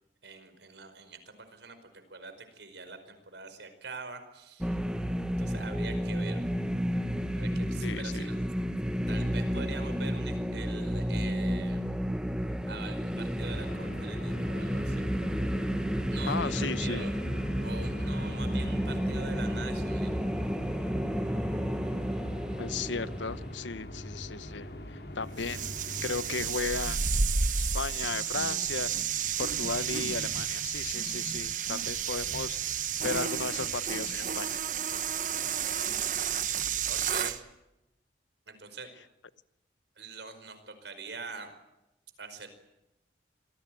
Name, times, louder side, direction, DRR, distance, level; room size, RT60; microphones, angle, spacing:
voice 1, 0.2-1.8 2.1-4.8 5.4-6.4 7.3-8.4 9.1-11.8 12.7-15.1 16.1-17.1 17.6-20.1 36.9-37.4 38.5-38.9 40.0-41.5 42.2-42.5, right 4 dB, 70° right, 9 dB, 5.0 m, -44 dB
sound 1, 4.6-23.5, equal, 5° right, 1.3 m, -31 dB
voice 2, 7.8-8.2 16.3-17.1 22.6-25.7 26.0-27.0 27.6-28.9 29.4-34.6, left 4 dB, 85° left, 16 dB, 0.9 m, -35 dB
sound 2, 13.4-26.5, left 1 dB, 55° left, 3.4 m, -43 dB
sound 3, 25.4-37.4, right 7 dB, 45° right, 1.3 m, -31 dB
27.0 x 18.5 x 9.2 m, 0.91 s
head